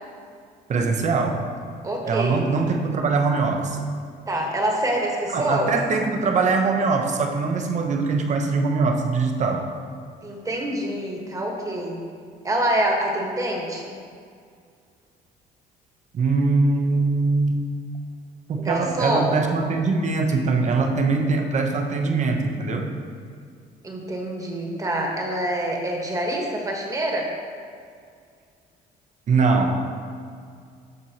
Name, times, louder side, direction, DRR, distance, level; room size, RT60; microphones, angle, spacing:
voice 1, 0.7-1.5 2.0-3.8 5.3-9.7 16.1-17.6 18.5-22.9 29.3-29.8, right 4 dB, 45° right, 3 dB, 0.9 m, -22 dB
voice 2, 1.8-2.4 4.3-5.7 10.2-12.0 12.4-13.9 18.6-19.3 23.8-27.3, right 1 dB, 20° right, 0 dB, 1.4 m, -26 dB
13.5 x 4.6 x 2.9 m, 2.2 s
cardioid pair, 110°, 17 cm